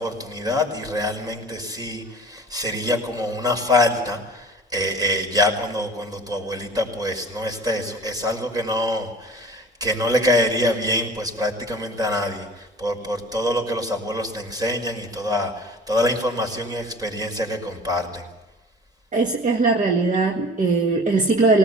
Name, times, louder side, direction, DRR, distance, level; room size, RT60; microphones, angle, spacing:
voice 1, 0.0-18.3, left 1 dB, 20° right, 5 dB, 5.7 m, -25 dB
voice 2, 19.1-21.6, right 3 dB, 40° right, 4 dB, 1.7 m, -19 dB
20.0 x 19.0 x 8.4 m, 1.1 s
cardioid pair, 90°, 20 cm